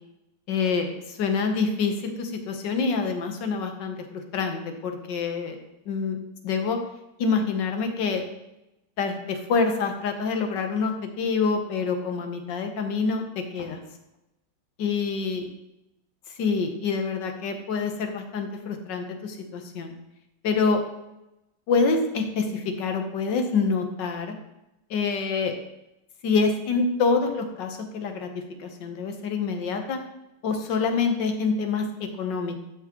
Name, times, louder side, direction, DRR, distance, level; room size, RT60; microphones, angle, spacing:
voice 1, 0.5-5.6 5.9-6.2 6.4-6.8 7.2-8.2 9.0-13.2 13.5-13.8 14.8-15.5 16.4-19.9 20.4-20.8 21.7-24.3 24.9-25.5 26.2-28.3 28.6-30.0 30.4-32.5, left 4 dB, 85° left, 5 dB, 1.7 m, -26 dB
12.0 x 6.0 x 3.0 m, 0.92 s
omnidirectional pair, 1.9 m